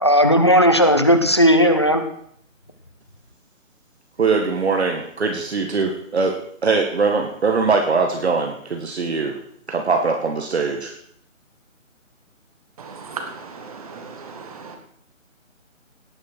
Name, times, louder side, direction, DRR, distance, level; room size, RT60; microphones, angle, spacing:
voice 1, 0.0-2.0, equal, 20° left, 7 dB, 0.6 m, -15 dB
voice 2, 4.2-6.3 6.6-9.4 9.7-10.9, right 4 dB, 55° right, 3 dB, 2.1 m, -21 dB
voice 3, 12.8-14.8, right 5 dB, 25° right, 5 dB, 1.9 m, -36 dB
17.5 x 7.1 x 6.4 m, 0.65 s
figure-of-eight pair, 160°, 40 cm